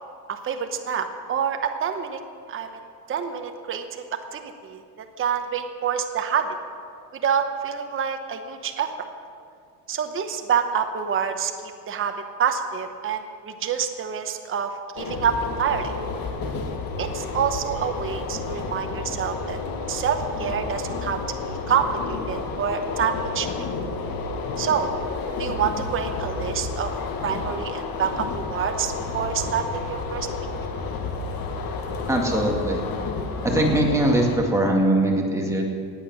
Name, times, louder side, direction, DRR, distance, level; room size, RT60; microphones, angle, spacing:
voice 1, 0.3-2.2 2.5-2.7 3.1-4.8 5.2-6.5 7.2-9.1 9.9-15.9 17.0-19.6 19.9-23.6 24.6-24.9 25.4-26.9 27.2-30.3, right 7 dB, 30° right, 6 dB, 0.9 m, -27 dB
sound 1, 15.0-34.4, left 4 dB, 55° left, 1.7 m, -31 dB
voice 2, 32.1-32.8 33.4-35.6, right 1 dB, 5° right, -1 dB, 2.2 m, -21 dB
19.0 x 8.2 x 6.2 m, 2.2 s
cardioid pair, 135°, 42 cm